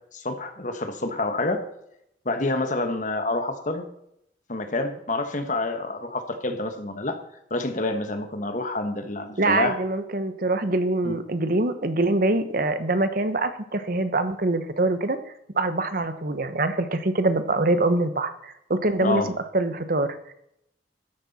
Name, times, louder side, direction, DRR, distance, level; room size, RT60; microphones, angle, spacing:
voice 1, 0.1-1.6 2.2-3.9 4.5-7.2 7.5-9.8 11.0-11.2 19.0-19.3, left 2 dB, 45° left, 7 dB, 1.4 m, -28 dB
voice 2, 9.4-15.2 15.5-19.2 19.5-20.1, right 2 dB, 50° right, 10 dB, 1.0 m, -24 dB
13.0 x 9.9 x 4.2 m, 0.77 s
head